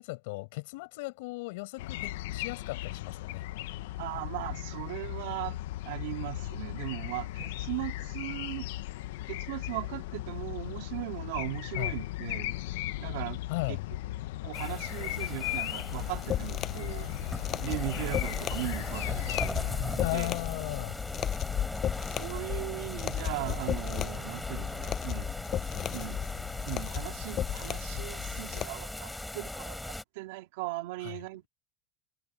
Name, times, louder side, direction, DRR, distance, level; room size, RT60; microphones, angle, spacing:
voice 1, 0.0-3.4 11.8-12.0 13.5-13.9 19.9-21.0 31.0-31.2, left 25 dB, 65° left, 5.5 m, -36 dB
sound 1, 1.8-20.4, left 16 dB, 90° left, 0.9 m, -37 dB
voice 2, 4.0-5.6 5.8-8.7 9.3-12.6 13.0-13.4 13.7-13.8 14.4-17.1 17.6-19.6 20.1-20.3 22.1-25.3 25.9-26.2 26.6-31.5, right 20 dB, 70° right, 2.8 m, -38 dB
sound 2, 14.5-30.0, left 1 dB, 5° left, 3.5 m, -39 dB
sound 3, 15.9-28.7, left 11 dB, 25° left, 5.8 m, -35 dB
cardioid pair, 175°, 0 cm